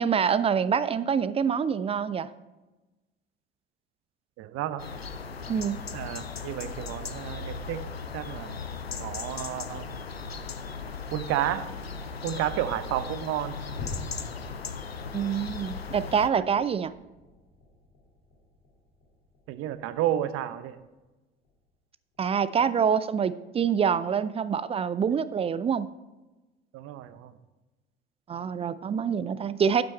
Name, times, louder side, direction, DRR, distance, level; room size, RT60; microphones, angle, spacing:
voice 1, 0.0-2.3 5.5-5.8 15.1-16.9 22.2-25.9 28.3-29.8, right 7 dB, 20° right, 15 dB, 0.4 m, -26 dB
voice 2, 4.4-4.8 5.9-7.8 8.1-8.6 9.0-9.9 11.1-11.7 12.2-13.6 16.3-16.4 19.5-20.8 26.7-27.3, right 12 dB, 50° right, 12 dB, 0.8 m, -31 dB
sound 1, 4.8-16.3, left 5 dB, 90° left, 0.5 m, -37 dB
sound 2, 13.7-20.4 20.7-21.0 21.4-21.6 22.1-22.3, left 2 dB, 65° left, 2.8 m, -46 dB
8.8 x 7.8 x 4.4 m, 1.1 s
figure-of-eight pair, 55°, 30 cm